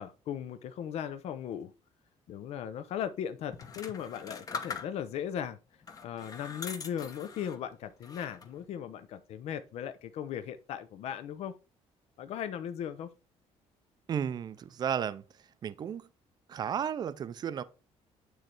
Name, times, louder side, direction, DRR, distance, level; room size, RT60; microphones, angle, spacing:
voice 1, 0.0-1.7 2.3-5.6 6.0-11.5 12.2-13.1, left 9 dB, 65° left, 0.6 m, -37 dB
sound 1, 3.5-5.3 5.8-7.6 8.0-8.6, left 5 dB, 30° left, 0.9 m, -42 dB
voice 2, 14.1-15.2 15.6-16.1 16.5-17.6, right 8 dB, 35° right, 0.4 m, -33 dB
9.0 x 3.2 x 4.3 m
cardioid pair, 140°, 12 cm